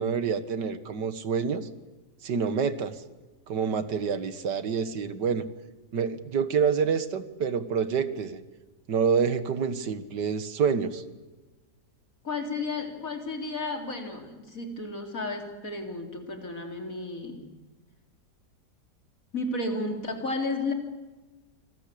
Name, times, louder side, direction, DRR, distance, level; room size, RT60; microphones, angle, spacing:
voice 1, 0.0-1.7 2.2-3.0 3.5-5.5 5.9-8.4 8.9-11.0, right 6 dB, 80° right, 12 dB, 2.1 m, -27 dB
voice 2, 12.2-17.4 19.3-20.7, left 2 dB, 50° left, 4 dB, 4.0 m, -33 dB
27.0 x 21.5 x 8.5 m, 1.2 s
omnidirectional pair, 1.8 m